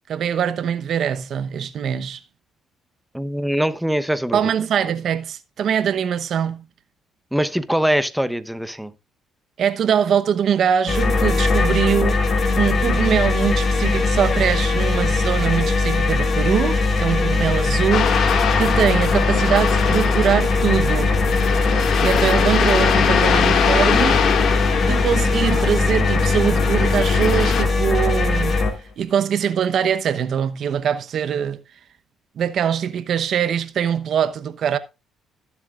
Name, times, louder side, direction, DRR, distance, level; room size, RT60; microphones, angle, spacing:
voice 1, 0.1-2.2 4.3-6.7 9.6-12.2 12.5-21.2 22.0-24.3 24.8-28.6 29.0-31.6 32.4-34.8, right 8 dB, 60° right, 0.9 m, -22 dB
voice 2, 3.1-4.4 7.3-8.9, equal, ahead, 0.9 m, -22 dB
sound 1, 10.9-28.7, left 3 dB, 40° left, 2.9 m, -20 dB
sound 2, 17.9-27.6, left 7 dB, 65° left, 1.9 m, -23 dB
19.0 x 7.5 x 2.5 m
cardioid pair, 95°, 0 cm